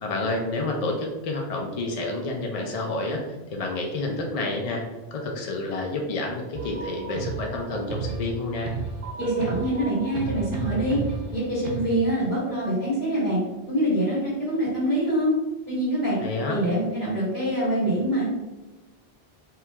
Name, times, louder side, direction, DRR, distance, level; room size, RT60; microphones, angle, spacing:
voice 1, 0.0-4.8 5.1-8.7 16.2-16.6, left 2 dB, 45° left, 0 dB, 0.5 m, -29 dB
sound 1, 6.5-11.8, right 5 dB, 60° right, 0.8 m, -32 dB
voice 2, 9.2-11.0 11.3-13.4 13.7-15.3 15.7-16.2 16.5-18.2, right 1 dB, 65° left, -7 dB, 1.6 m, -25 dB
4.5 x 2.3 x 3.4 m, 1.1 s
omnidirectional pair, 1.0 m